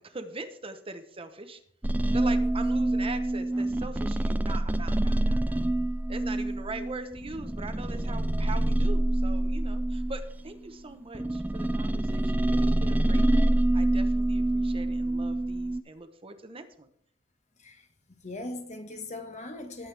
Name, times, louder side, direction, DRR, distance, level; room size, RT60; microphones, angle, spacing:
voice 1, 0.0-1.6 2.1-5.6 6.1-16.9, right 3 dB, 30° right, 1.0 m, -42 dB
sound 1, 1.8-10.6 11.1-15.8, right 1 dB, 10° right, 0.4 m, -26 dB
voice 2, 2.3-2.7 17.6-19.9, left 2 dB, 35° left, 1.3 m, -40 dB
20.5 x 7.9 x 3.4 m
head